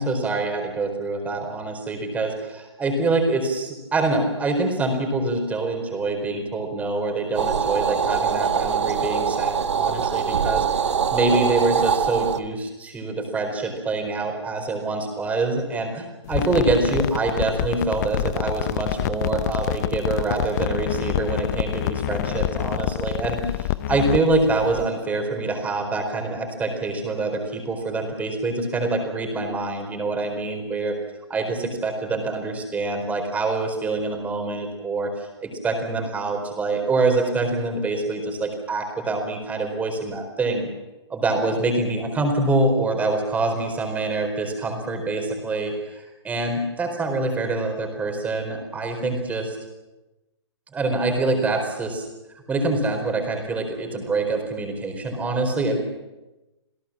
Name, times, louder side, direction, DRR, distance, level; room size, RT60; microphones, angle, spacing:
voice 1, 0.0-31.0 31.3-40.7 41.1-49.6 50.7-52.1 52.5-55.8, right 3 dB, 10° right, 4 dB, 4.4 m, -25 dB
sound 1, 7.3-12.4, right 7 dB, 75° right, 1.7 m, -23 dB
sound 2, 16.3-24.9, left 13 dB, 35° left, 0.8 m, -27 dB
28.0 x 17.0 x 7.5 m, 1.0 s
hypercardioid pair, 150°, 15 cm